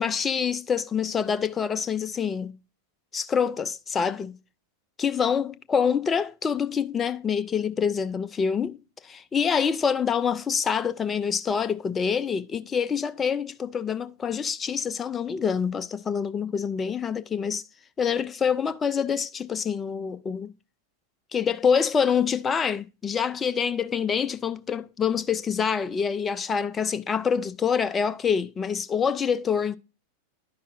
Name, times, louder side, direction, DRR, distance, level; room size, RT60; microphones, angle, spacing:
voice 1, 0.0-2.6 3.1-4.4 5.0-17.6 18.0-20.5 21.3-29.8, left 6 dB, 20° left, 0.5 m, -26 dB
11.0 x 5.6 x 2.5 m
figure-of-eight pair, 90°, 0 cm